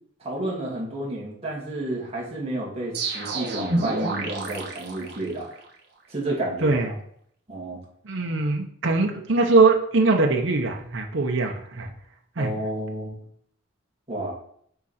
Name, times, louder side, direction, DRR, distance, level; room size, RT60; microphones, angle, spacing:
voice 1, 0.2-5.5 6.1-6.8 7.5-7.8 12.4-13.2 14.1-14.3, right 1 dB, 30° right, -4 dB, 2.2 m, -31 dB
sound 1, 2.9-5.7, right 2 dB, 55° right, 1.5 m, -29 dB
voice 2, 6.6-6.9 8.0-11.9 12.4-12.5, right 3 dB, 70° right, 2 dB, 0.9 m, -22 dB
6.9 x 4.9 x 4.2 m, 0.66 s
head